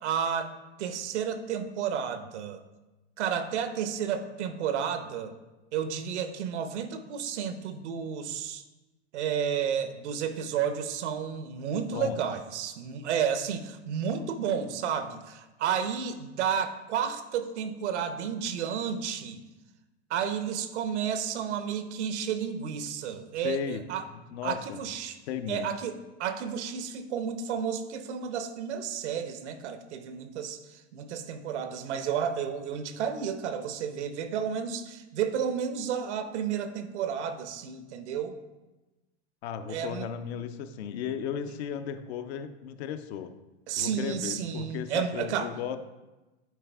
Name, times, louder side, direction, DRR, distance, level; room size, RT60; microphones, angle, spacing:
voice 1, 0.0-0.5 0.8-2.6 3.2-5.3 5.7-8.6 9.1-19.4 20.1-24.0 24.4-25.2 25.5-25.9 26.2-38.4 39.7-40.1 43.7-45.5, right 8 dB, 75° right, 9 dB, 0.8 m, -31 dB
voice 2, 23.4-23.8 24.1-24.8 25.3-25.7 39.4-43.3 43.8-45.8, left 8 dB, 65° left, 9 dB, 0.6 m, -35 dB
9.3 x 4.1 x 3.4 m, 1.1 s
hypercardioid pair, 115°, 34 cm